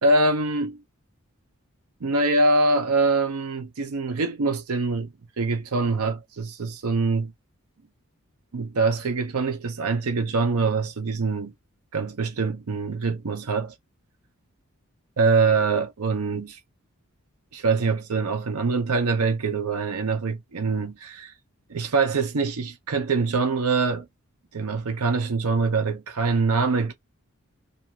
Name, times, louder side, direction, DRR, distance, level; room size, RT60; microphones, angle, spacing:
voice 1, 0.0-0.8 2.0-7.3 8.5-11.5 11.9-13.7 15.2-16.6 17.5-21.3 21.7-24.1 24.5-26.9, right 3 dB, 80° right, 0.6 m, -24 dB
2.6 x 2.4 x 2.8 m
head